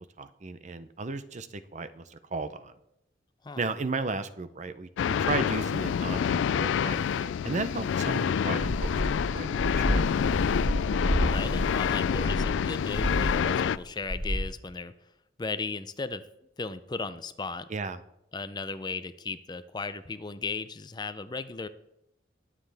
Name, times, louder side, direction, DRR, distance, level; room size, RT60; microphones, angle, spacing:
voice 1, 0.2-2.7 3.6-10.1 17.7-18.0, right 3 dB, 40° right, 12 dB, 0.6 m, -35 dB
sound 1, 5.0-13.8, left 7 dB, 80° left, 0.3 m, -27 dB
sound 2, 8.6-13.8 14.0-14.4, equal, 15° right, 3.7 m, -30 dB
voice 2, 11.2-14.9 15.4-16.2 16.6-17.7 18.3-21.7, left 4 dB, 25° left, 13 dB, 0.5 m, -36 dB
20.5 x 7.6 x 3.4 m, 0.81 s
head